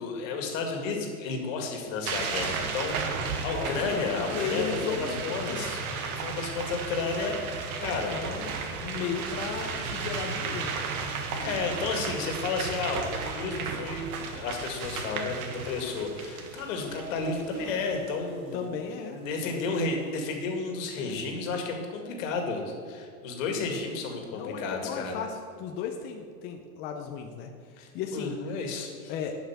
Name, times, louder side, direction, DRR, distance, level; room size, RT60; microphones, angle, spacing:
voice 1, 0.0-5.8 6.1-7.5 7.8-8.2 11.3-18.7 19.1-25.2 27.8-29.1, left 4 dB, 55° left, 3 dB, 2.1 m, -32 dB
sound 1, 2.0-18.0, right 5 dB, 70° right, 1.4 m, -34 dB
voice 2, 3.4-5.8 8.1-10.7 18.5-19.7 21.0-21.2 24.3-28.4 29.1-29.4, left 6 dB, 25° left, 3 dB, 0.4 m, -35 dB
10.5 x 5.7 x 5.9 m, 2.2 s
supercardioid pair, 145°, 45 cm